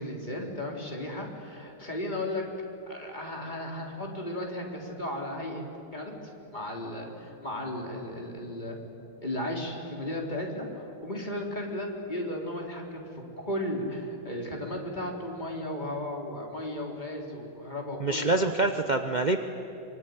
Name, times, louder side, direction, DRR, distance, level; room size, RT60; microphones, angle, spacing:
voice 1, 0.0-2.4 2.9-5.6 5.9-8.8 9.2-13.1 13.4-18.5, left 1 dB, 20° left, 0 dB, 3.9 m, -35 dB
voice 2, 18.0-19.4, right 2 dB, 40° right, 6 dB, 0.6 m, -25 dB
25.0 x 24.5 x 9.5 m, 2.7 s
omnidirectional pair, 2.3 m